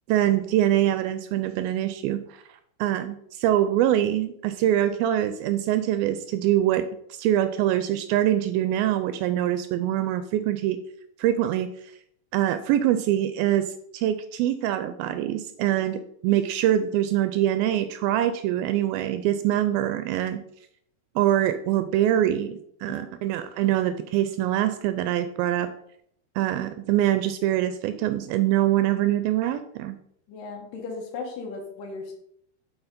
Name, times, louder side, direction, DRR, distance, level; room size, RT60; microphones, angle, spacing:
voice 1, 0.1-2.4 2.8-10.8 11.2-11.7 12.3-20.4 21.2-25.7 26.4-30.0, right 12 dB, 80° right, 10 dB, 2.2 m, -24 dB
voice 2, 30.3-32.1, left 4 dB, 65° left, -1 dB, 2.7 m, -36 dB
7.0 x 6.0 x 5.2 m, 0.70 s
omnidirectional pair, 4.6 m